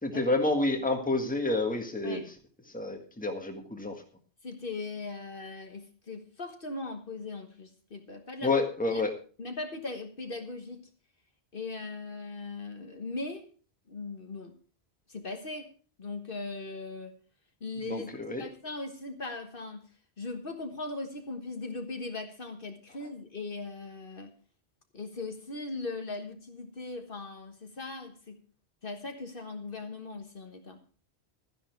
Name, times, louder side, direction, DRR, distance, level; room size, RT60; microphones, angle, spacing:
voice 1, 0.0-2.2 2.7-3.9 8.4-9.1 17.9-18.4, left 2 dB, 10° left, 1.7 m, -29 dB
voice 2, 4.4-8.6 8.9-9.0 9.4-10.8 11.5-13.5 13.9-14.5 15.1-15.7 16.0-17.1 17.6-18.1 18.4-19.9 20.2-24.3 24.9-28.4 28.8-30.8, left 3 dB, 55° left, 1.6 m, -39 dB
13.0 x 10.5 x 4.6 m
omnidirectional pair, 1.1 m